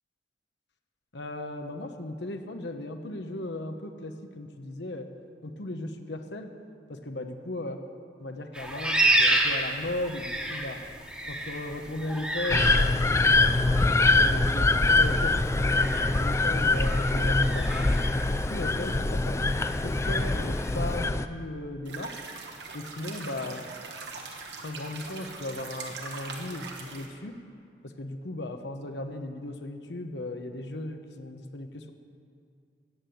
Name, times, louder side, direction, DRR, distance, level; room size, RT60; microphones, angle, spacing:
voice 1, 1.1-5.1 5.4-6.5 6.9-7.8 8.2-10.8 11.3-13.6 14.1-17.7 18.3-22.1 22.7-23.6 24.6-27.4 27.8-31.9, left 1 dB, 70° left, 6 dB, 1.0 m, -37 dB
sound 1, 8.5-21.0, right 1 dB, 5° right, 1.5 m, -32 dB
sound 2, 12.5-21.3, left 2 dB, 15° left, 0.4 m, -24 dB
sound 3, 21.9-27.1, right 4 dB, 65° right, 1.5 m, -41 dB
13.5 x 8.9 x 7.8 m, 2.3 s
head